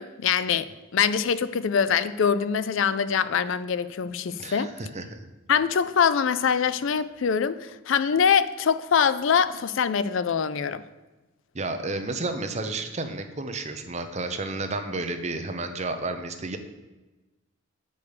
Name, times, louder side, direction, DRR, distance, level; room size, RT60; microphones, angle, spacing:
voice 1, 0.0-4.7 5.5-10.8, left 7 dB, 65° left, 14 dB, 0.4 m, -24 dB
voice 2, 4.4-5.3 11.5-16.6, right 2 dB, 30° right, 6 dB, 0.7 m, -31 dB
8.1 x 5.4 x 6.6 m, 1.1 s
head